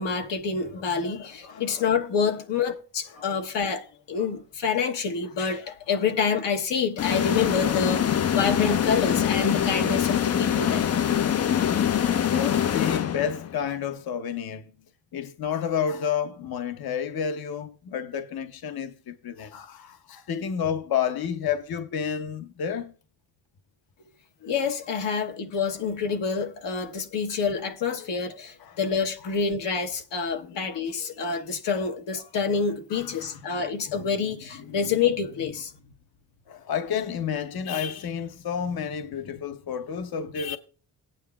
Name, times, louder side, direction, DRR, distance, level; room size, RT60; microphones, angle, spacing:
voice 1, 0.0-10.9 24.4-35.7, left 5 dB, 75° left, 1.1 m, -27 dB
sound 1, 7.0-13.6, left 9 dB, 35° left, 0.4 m, -24 dB
voice 2, 11.5-14.7 15.1-22.9 25.0-25.3 28.6-28.8 30.4-30.6 31.7-31.8 32.9-33.6 34.0-34.1 34.5-34.8 36.5-40.6, left 8 dB, 55° left, 0.8 m, -31 dB
18.0 x 9.2 x 2.3 m
cardioid pair, 90°, 43 cm